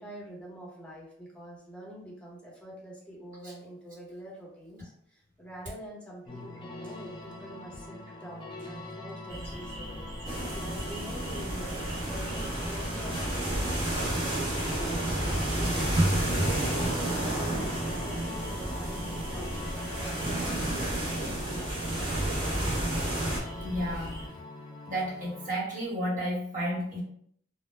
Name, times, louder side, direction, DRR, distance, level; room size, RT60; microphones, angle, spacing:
voice 1, 0.0-15.2 15.5-22.8, equal, 5° left, -4 dB, 0.7 m, -46 dB
sound 1, 6.3-25.5, left 2 dB, 25° left, 0.3 m, -43 dB
sound 2, 9.3-24.3, equal, 90° right, 0.7 m, -41 dB
sound 3, 10.3-23.4, right 1 dB, 25° right, 0.7 m, -31 dB
voice 2, 23.6-24.1 24.9-27.0, equal, 45° right, -7 dB, 1.2 m, -32 dB
2.1 x 2.0 x 3.0 m, 0.65 s
head